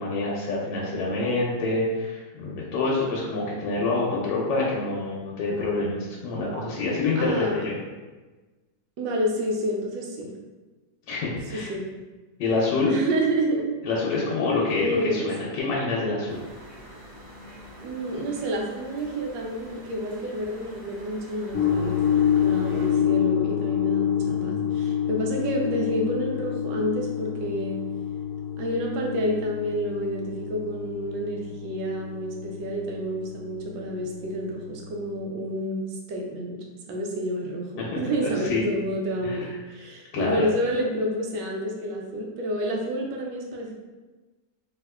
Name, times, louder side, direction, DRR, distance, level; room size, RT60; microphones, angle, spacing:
voice 1, 0.0-7.8 11.1-11.7 12.4-12.9 13.9-16.4 24.2-24.7 37.8-38.6 39.2-39.5 40.1-40.5, left 3 dB, 80° left, -4 dB, 1.2 m, -27 dB
voice 2, 7.2-7.7 9.0-10.3 11.5-11.9 12.9-13.7 14.7-15.5 17.8-27.8 28.6-36.6 36.9-43.7, equal, 85° right, 0 dB, 1.3 m, -29 dB
sound 1, 16.3-22.9, equal, 60° right, 1.7 m, -46 dB
sound 2, 21.5-35.2, left 9 dB, 35° left, 0.8 m, -28 dB
3.5 x 2.6 x 2.2 m, 1.2 s
omnidirectional pair, 1.9 m